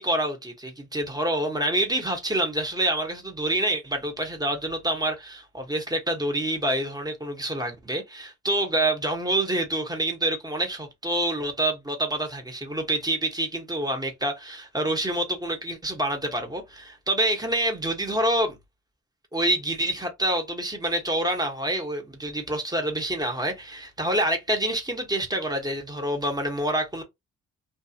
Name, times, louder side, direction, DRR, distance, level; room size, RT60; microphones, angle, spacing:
voice 1, 0.0-18.6 19.3-27.0, right 1 dB, 10° right, 1.1 m, -27 dB
2.5 x 2.5 x 2.8 m
cardioid pair, 75°, 33 cm